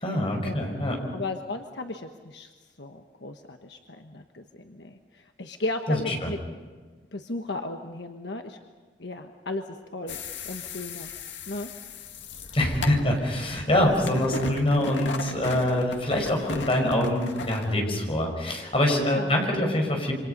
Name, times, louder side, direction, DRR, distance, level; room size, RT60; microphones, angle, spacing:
voice 1, 0.0-1.0 5.9-6.3 12.5-20.1, left 1 dB, 30° left, 1 dB, 5.6 m, -25 dB
voice 2, 1.1-2.5 2.8-6.4 7.1-8.6 9.0-9.6 9.9-10.2 10.4-11.1 11.5-11.7 12.8-13.0 19.0-19.3, left 2 dB, 70° left, 5 dB, 1.3 m, -35 dB
sound 1, 10.1-17.7, left 3 dB, 85° left, 1.9 m, -37 dB
28.0 x 25.5 x 5.4 m, 1.5 s
head